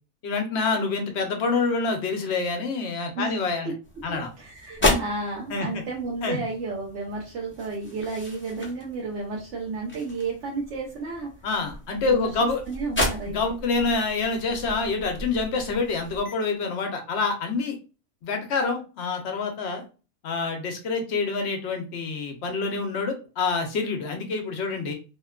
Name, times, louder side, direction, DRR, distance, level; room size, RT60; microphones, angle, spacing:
voice 1, 0.2-3.7 4.0-4.3 4.8-5.0 5.5-5.8 6.2-6.4 11.4-12.6 13.2-17.8 18.2-19.8 20.2-24.9, left 4 dB, 65° left, 4 dB, 0.9 m, -27 dB
sound 1, 3.8-16.3, left 1 dB, 15° left, 0.5 m, -33 dB
voice 2, 4.1-11.3 12.0-12.3 12.7-13.3, right 3 dB, 75° right, -3 dB, 1.0 m, -32 dB
2.8 x 2.2 x 2.3 m, 0.34 s
omnidirectional pair, 1.3 m